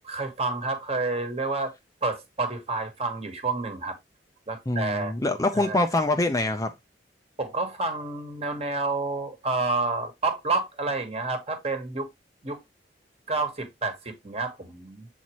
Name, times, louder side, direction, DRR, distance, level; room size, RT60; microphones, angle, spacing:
voice 1, 0.0-1.7 2.0-3.9 4.5-5.1 5.5-5.8 7.4-12.1 12.4-12.6 13.3-15.1, right 3 dB, 35° right, 1.4 m, -29 dB
voice 2, 4.7-6.7, left 2 dB, 20° left, 0.6 m, -24 dB
7.4 x 4.2 x 3.0 m
head